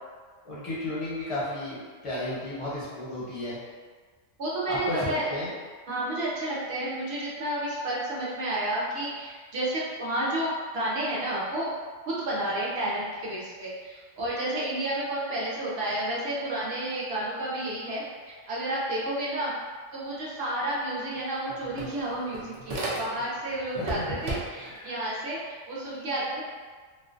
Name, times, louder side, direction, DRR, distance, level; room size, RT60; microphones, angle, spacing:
voice 1, 0.4-3.6 4.7-5.5 23.8-24.1 24.6-25.0, left 1 dB, 35° left, -9 dB, 0.6 m, -33 dB
voice 2, 4.4-5.3 5.9-11.7 12.1-19.5 19.9-26.4, right 1 dB, 60° right, -6 dB, 0.8 m, -31 dB
sound 1, 20.7-20.8 21.1-23.4 23.7-24.8, right 2 dB, 80° right, 0.4 m, -35 dB
2.4 x 2.2 x 2.4 m, 1.5 s
omnidirectional pair, 1.3 m